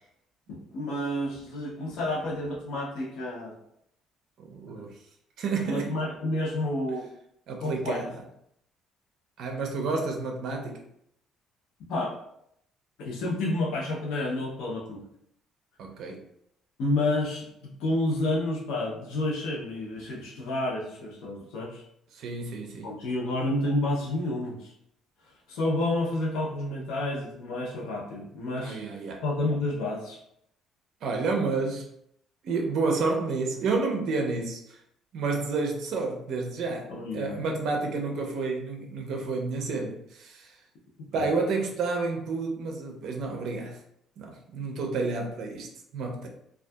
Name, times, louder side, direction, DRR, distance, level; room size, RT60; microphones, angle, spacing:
voice 1, 0.5-3.6 4.7-4.8 5.6-7.1 7.6-8.0 11.9-12.2 13.0-15.0 16.8-21.8 22.8-24.7 25.5-28.8 29.2-30.2 36.9-37.4 41.1-41.3, left 1 dB, 85° left, 0.6 m, -30 dB
voice 2, 4.4-5.0 5.4-5.9 7.5-8.1 9.4-10.8 15.8-16.2 22.1-22.9 28.6-29.2 31.0-31.9 32.4-34.8 35.1-40.5 41.1-43.8 44.2-46.3, right 3 dB, 55° right, 0.4 m, -30 dB
2.6 x 2.3 x 2.2 m
cardioid pair, 180°, 0 cm